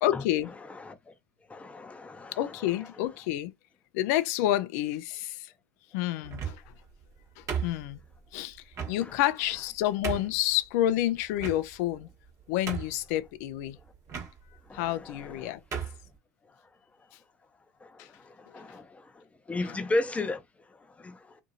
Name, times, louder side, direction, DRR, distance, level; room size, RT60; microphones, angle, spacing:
voice 1, 0.0-0.5 2.4-3.5 3.9-5.5 5.9-6.6 7.4-8.0 8.3-12.1 12.5-13.8 14.7-15.6 18.0-18.1 19.6-19.8, left 13 dB, 65° left, 0.4 m, -29 dB
voice 2, 1.5-2.3 14.7-14.8 15.4-15.5 18.5-18.9 19.5-20.4 21.0-21.2, left 2 dB, 15° left, 0.6 m, -32 dB
sound 1, 6.2-6.8 7.5-8.2 8.7-9.0 9.6-9.7 10.0-10.4 11.4-11.9 12.3-12.4 12.7-13.1 14.1-14.3 15.2-15.3 15.7-16.0, right 7 dB, 35° right, 1.1 m, -34 dB
2.6 x 2.6 x 2.6 m
hypercardioid pair, 95°, 9 cm